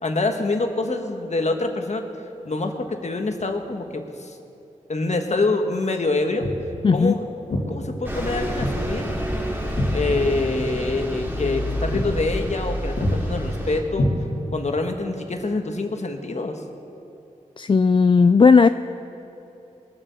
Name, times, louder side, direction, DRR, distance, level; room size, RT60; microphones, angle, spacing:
voice 1, 0.0-2.0 2.4-4.4 4.9-6.5 6.9-7.3 7.7-9.1 9.9-14.1 14.5-16.6, left 3 dB, 55° left, 5 dB, 1.4 m, -25 dB
Walk footsteps, 6.4-6.7 7.5-7.7 8.6-8.8 9.1-10.5 10.8-11.0 11.4-11.6 11.9-12.1 12.4-12.7 13.0-13.2 13.9-14.6, left 1 dB, 80° left, 2.5 m, -26 dB
voice 2, 6.8-7.1 17.6-18.7, left 5 dB, 35° left, 11 dB, 0.4 m, -15 dB
Bus, 8.0-13.8, equal, 15° right, 2.8 m, -28 dB
21.0 x 7.5 x 7.0 m, 2.9 s
cardioid pair, 55°, 14 cm